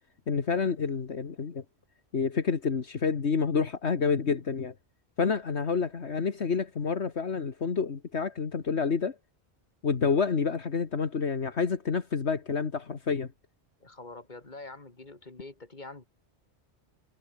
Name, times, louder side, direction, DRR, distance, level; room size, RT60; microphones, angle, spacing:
voice 1, 0.3-1.6 2.1-4.7 5.2-9.2 9.8-13.3, left 5 dB, 70° left, 1.9 m, -28 dB
voice 2, 13.8-16.0, left 2 dB, 40° left, 3.1 m, -45 dB
omnidirectional pair, 1.2 m